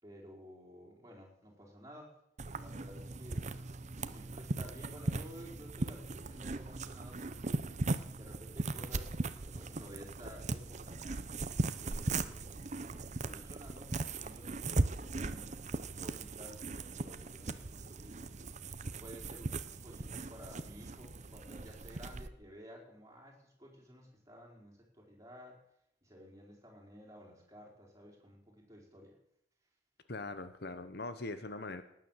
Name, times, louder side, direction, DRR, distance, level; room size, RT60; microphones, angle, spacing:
voice 1, 0.0-2.2 2.6-3.5 4.0-7.7 8.2-12.5 12.8-15.6 15.9-18.2 18.8-25.6 26.0-29.2, equal, 15° right, -2 dB, 4.6 m, -54 dB
sound 1, 2.4-22.3, right 3 dB, 40° right, 0.8 m, -38 dB
voice 2, 30.1-31.8, left 2 dB, 60° left, 11 dB, 1.1 m, -41 dB
18.5 x 9.3 x 7.4 m, 0.75 s
head